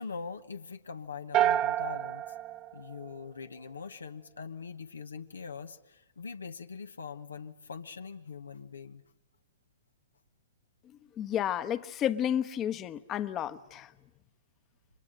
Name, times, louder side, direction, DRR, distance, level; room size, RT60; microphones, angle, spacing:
voice 1, 0.0-2.3 2.7-9.0, left 5 dB, 85° left, 1.1 m, -42 dB
sound 1, 1.3-3.6, right 12 dB, 35° right, 1.0 m, -29 dB
voice 2, 11.2-13.9, left 10 dB, 25° left, 1.0 m, -31 dB
29.5 x 25.0 x 6.6 m
hypercardioid pair, 120°, 0 cm